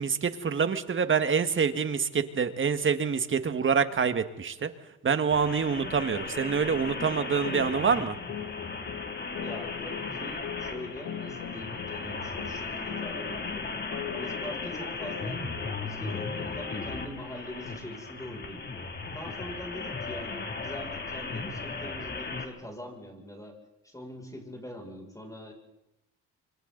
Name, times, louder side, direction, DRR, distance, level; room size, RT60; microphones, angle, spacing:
voice 1, 0.0-4.7 5.0-8.2, right 6 dB, 40° right, 10 dB, 1.9 m, -26 dB
sound 1, 5.3-22.4, left 4 dB, 35° left, 3.0 m, -36 dB
sound 2, 7.4-16.7, left 9 dB, 80° left, 2.2 m, -41 dB
voice 2, 9.4-13.7 14.1-15.4 15.8-18.7 19.1-23.6 23.8-25.5, left 1 dB, 10° left, 1 dB, 6.7 m, -43 dB
27.0 x 25.5 x 4.1 m, 0.87 s
cardioid pair, 90°, 30 cm